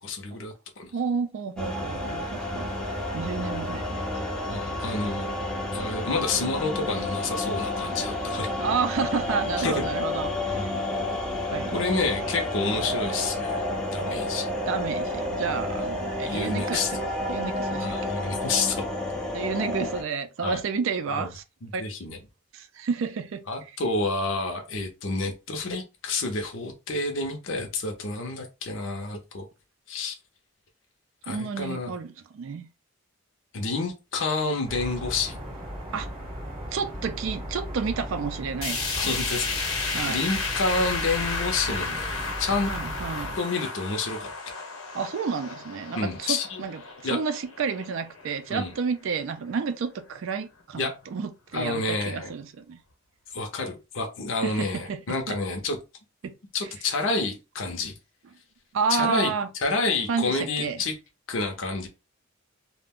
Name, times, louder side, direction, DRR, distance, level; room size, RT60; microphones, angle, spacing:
voice 1, 0.0-0.9 4.4-5.3 5.7-8.5 9.6-9.8 10.5-10.7 11.7-13.6 13.9-14.5 15.8-15.9 16.2-16.9 17.8-18.9 20.4-20.6 21.1-21.3 21.6-22.2 23.5-29.5 29.9-30.1 31.2-32.0 33.5-35.4 39.0-42.7 43.4-44.3 46.0-46.6 47.0-47.2 48.5-48.7 50.8-50.9 51.5-52.3 53.3-55.8 56.5-57.9 58.9-59.3 59.6-61.0 61.3-61.9, left 3 dB, 60° left, 0.6 m, -29 dB
voice 2, 0.9-2.7 3.1-4.2 8.6-10.7 11.5-11.8 14.7-17.0 17.3-18.0 19.3-21.4 21.7-21.8 22.5-23.4 31.3-32.7 35.9-36.1 36.7-39.1 39.9-40.2 42.7-43.3 44.9-46.8 47.1-52.8 54.4-55.0 55.3-55.4 56.2-56.3 58.7-59.5 60.1-60.8, right 5 dB, 65° right, 0.3 m, -30 dB
sound 1, 1.6-20.0, left 1 dB, 5° left, 0.5 m, -30 dB
sound 2, 34.7-43.4, equal, 25° right, 0.9 m, -37 dB
sound 3, 38.6-48.8 49.2-49.3 49.6-49.7 50.6-50.7, left 4 dB, 80° left, 0.9 m, -33 dB
2.4 x 2.1 x 3.5 m
head